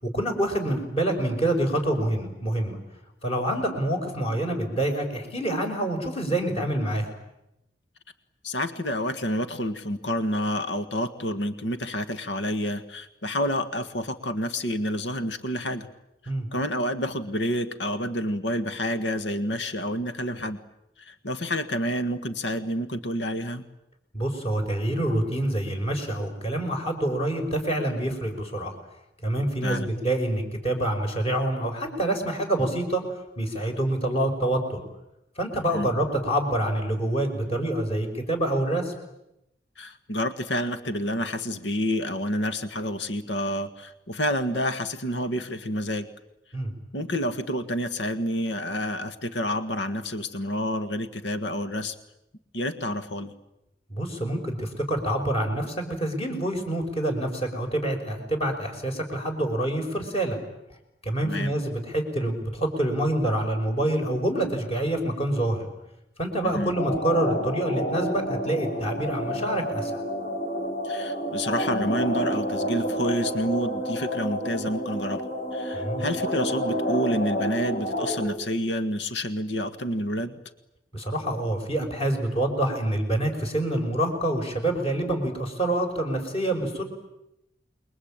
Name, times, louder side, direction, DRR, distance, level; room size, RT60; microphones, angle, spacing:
voice 1, 0.0-2.8 3.2-7.1 16.3-16.5 24.1-28.8 29.2-34.8 35.4-38.9 46.5-46.7 53.9-60.4 61.0-65.7 66.2-70.0 75.7-76.1 80.9-86.8, right 1 dB, 35° left, 4 dB, 5.6 m, -26 dB
voice 2, 8.4-15.9 16.5-20.6 21.0-23.6 29.6-29.9 35.7-35.9 39.8-46.1 46.9-51.9 52.5-53.3 61.2-61.5 66.5-66.7 70.8-75.2 75.5-80.4, equal, 85° left, 9 dB, 1.7 m, -29 dB
sound 1, 66.7-78.3, equal, 55° left, 5.7 m, -29 dB
28.5 x 22.5 x 8.9 m, 0.86 s
head